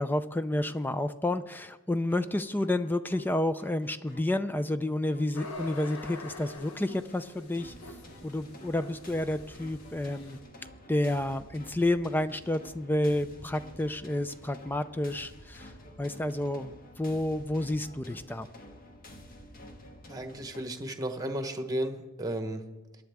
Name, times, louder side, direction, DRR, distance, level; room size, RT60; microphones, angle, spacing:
voice 1, 0.0-7.7 8.2-10.4 10.9-15.7 16.0-18.5, left 1 dB, 10° left, 12 dB, 0.4 m, -30 dB
sound 1, 2.1-20.6, left 1 dB, 45° left, 1.6 m, -51 dB
sound 2, 5.3-10.4, left 3 dB, 90° left, 1.3 m, -45 dB
voice 2, 20.1-22.6, right 1 dB, 15° right, 6 dB, 1.1 m, -34 dB
22.5 x 10.0 x 3.5 m, 1.1 s
head